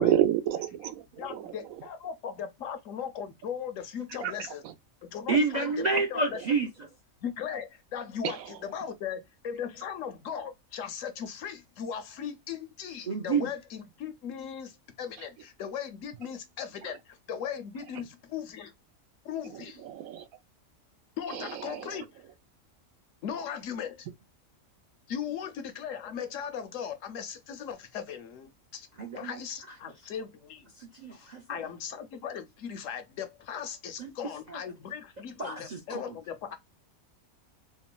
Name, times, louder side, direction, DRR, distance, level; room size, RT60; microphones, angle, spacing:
voice 1, 0.0-1.5 4.2-4.3 8.2-8.3 19.9-20.2 21.7-21.9, right 11 dB, 80° right, 1.0 m, -28 dB
voice 2, 1.1-4.6 5.0-5.8 6.1-6.4 7.2-18.7 19.2-19.8 21.2-22.1 23.2-24.1 25.1-28.9 29.2-30.7 31.1-36.6, left 8 dB, 75° left, 1.0 m, -38 dB
voice 3, 5.3-6.7 13.1-13.5 29.0-29.4 30.8-31.4 34.0-34.1 34.5-34.6 35.4-36.0, right 3 dB, 55° right, 0.5 m, -29 dB
3.7 x 2.1 x 2.2 m
omnidirectional pair, 1.4 m